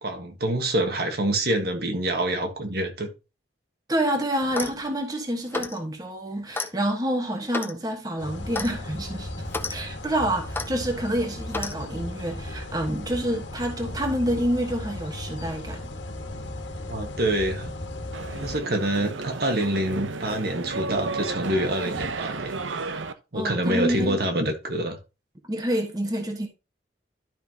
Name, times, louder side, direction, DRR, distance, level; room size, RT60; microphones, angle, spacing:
voice 1, 0.0-3.1 16.9-17.7 18.4-23.0 23.3-25.0, right 1 dB, 55° right, 1.5 m, -26 dB
voice 2, 3.9-15.8 23.3-24.2 25.4-26.5, right 1 dB, 20° right, 1.3 m, -28 dB
Clock, 4.4-4.8 5.5-5.8 6.5-6.7 7.5-7.8 8.5-8.7 9.5-9.7 10.5-10.7 11.5-11.8, left 3 dB, 10° left, 0.6 m, -31 dB
sound 1, 8.2-18.6, left 1 dB, 75° left, 1.7 m, -36 dB
sound 2, 18.1-23.1, right 3 dB, 90° right, 0.8 m, -32 dB
12.0 x 5.5 x 2.9 m
head